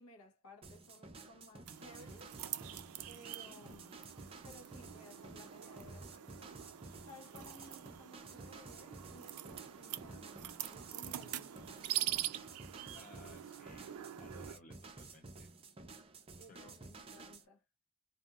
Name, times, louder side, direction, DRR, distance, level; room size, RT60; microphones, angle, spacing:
voice 1, 0.0-2.3 3.1-4.0 4.4-6.6 7.0-12.3 16.4-17.6, left 1 dB, 85° left, 0.9 m, -58 dB
sound 1, 0.6-17.5, right 3 dB, 25° right, 0.5 m, -53 dB
sound 2, 1.7-14.6, right 13 dB, 90° right, 0.4 m, -44 dB
voice 2, 12.9-15.5 16.5-16.9, left 2 dB, 35° left, 0.6 m, -59 dB
2.6 x 2.3 x 2.7 m
head